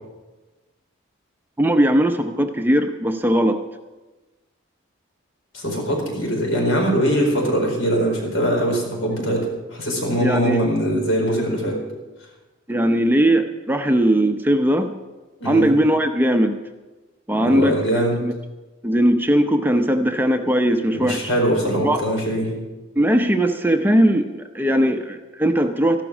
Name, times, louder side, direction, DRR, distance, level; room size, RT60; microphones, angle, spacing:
voice 1, 1.6-3.6 10.2-10.6 12.7-14.9 15.4-16.6 17.3-17.8 18.2-18.3 18.8-21.3 21.8-22.0 23.0-26.0, right 1 dB, 10° right, 6 dB, 0.6 m, -19 dB
voice 2, 5.5-11.8 15.4-15.7 17.3-18.2 20.9-22.5, equal, 75° left, 0 dB, 4.6 m, -22 dB
14.0 x 12.0 x 6.1 m, 1.2 s
head